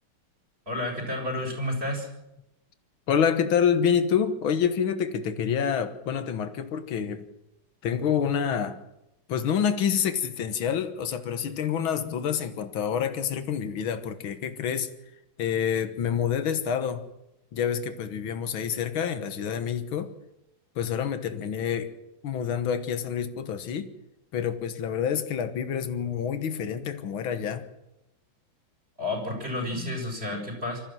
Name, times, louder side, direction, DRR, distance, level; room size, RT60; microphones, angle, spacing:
voice 1, 0.7-2.1 29.0-30.8, left 1 dB, 30° right, 7.3 m, -31 dB
voice 2, 3.1-7.3 7.8-8.8 9.3-14.9 15.4-17.0 17.5-20.1 20.8-21.9 22.2-23.9 24.3-27.6, left 8 dB, 80° left, 2.1 m, -27 dB
25.5 x 14.5 x 7.7 m
omnidirectional pair, 2.3 m